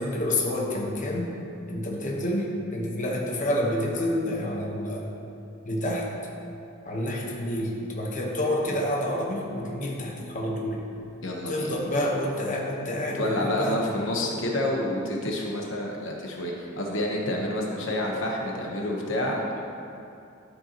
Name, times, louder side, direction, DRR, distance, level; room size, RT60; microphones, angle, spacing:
voice 1, 0.0-1.3 1.7-5.1 5.6-6.1 6.8-10.8 11.5-13.8, left 1 dB, 40° left, -2 dB, 1.2 m, -28 dB
voice 2, 11.2-11.7 13.2-19.4, left 1 dB, 75° left, -1 dB, 1.1 m, -28 dB
12.0 x 7.7 x 3.0 m, 2.7 s
head